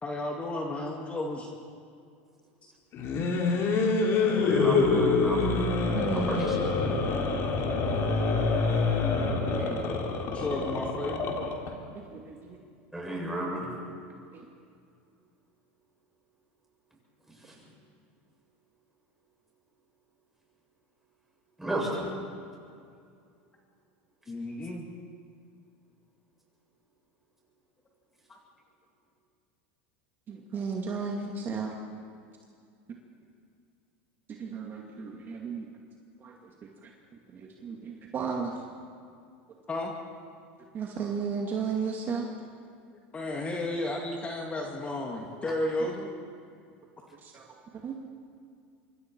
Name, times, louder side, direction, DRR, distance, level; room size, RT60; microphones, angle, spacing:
voice 1, 0.0-1.5 9.6-9.9 10.3-11.2 24.3-24.8 28.3-28.4 39.7-39.9 43.1-46.1, left 2 dB, 20° left, 0 dB, 2.3 m, -33 dB
sound 1, 2.9-11.7, left 4 dB, 45° left, 3.5 m, -26 dB
voice 2, 4.3-5.6 6.1-6.8 12.9-13.7 17.4-17.6 21.6-22.1 45.4-45.5, right 1 dB, 5° right, -3 dB, 7.7 m, -32 dB
voice 3, 5.9-6.5 7.8-8.0 8.3-9.1 9.4-9.8 11.9-12.6 14.3-14.4 30.3-31.8 34.4-35.7 36.2-36.9 37.3-38.5 40.7-42.3 47.1-47.5 47.8-48.0, right 5 dB, 35° right, 0 dB, 2.3 m, -35 dB
26.5 x 23.5 x 4.7 m, 2.4 s
supercardioid pair, 120°, 6 cm